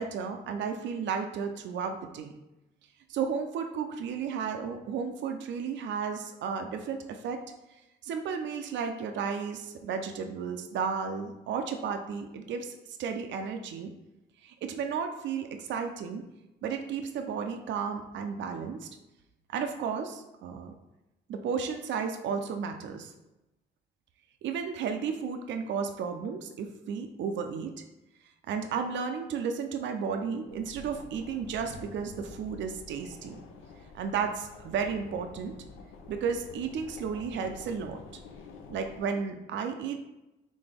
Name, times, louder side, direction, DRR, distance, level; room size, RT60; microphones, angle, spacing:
voice 1, 0.0-2.3 3.1-7.4 8.0-13.9 14.4-16.2 16.6-18.9 19.5-20.7 21.3-23.1 24.4-27.8 28.5-33.4 33.9-35.5 36.1-38.0 38.7-40.0, right 6 dB, 70° right, 6 dB, 0.5 m, -33 dB
sound 1, 30.5-39.0, left 4 dB, 85° left, 0.6 m, -48 dB
4.2 x 3.3 x 3.4 m, 0.95 s
cardioid pair, 90°, 20 cm